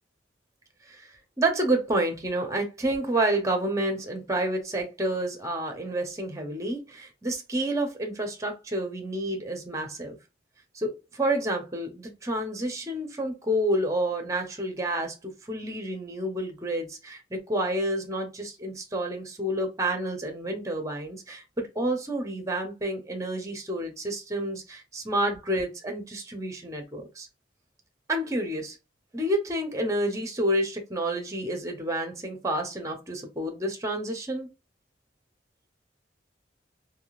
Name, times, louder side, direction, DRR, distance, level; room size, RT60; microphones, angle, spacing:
voice 1, 1.4-10.2 10.7-27.3 28.1-28.8 29.1-34.5, right 1 dB, 20° right, 0.8 m, -29 dB
3.5 x 2.8 x 2.4 m
head